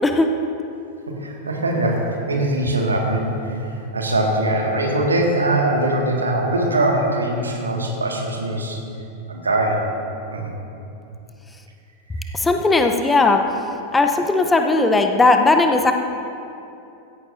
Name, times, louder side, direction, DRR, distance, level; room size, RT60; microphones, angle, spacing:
voice 1, 1.1-8.8 9.3-9.8 10.3-10.5 12.2-12.3, right 1 dB, 75° right, 0 dB, 1.8 m, -22 dB
voice 2, 12.3-13.4 13.9-15.9, left 3 dB, 10° left, 5 dB, 0.8 m, -17 dB
16.0 x 14.0 x 2.6 m, 2.7 s
figure-of-eight pair, 90°, 0 cm